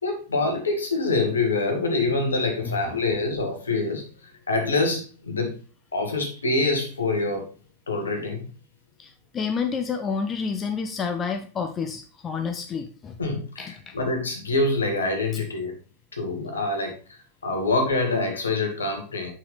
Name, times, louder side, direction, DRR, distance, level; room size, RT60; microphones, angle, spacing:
voice 1, 0.0-5.6 5.9-7.5 7.9-8.5 13.2-15.7 16.1-17.2 17.4-19.3, left 3 dB, 75° left, 3 dB, 1.9 m, -25 dB
voice 2, 2.6-3.0 9.0-13.2 13.6-13.9, left 5 dB, 25° left, 7 dB, 0.8 m, -29 dB
7.6 x 6.0 x 3.4 m, 0.35 s
figure-of-eight pair, 90°, 0 cm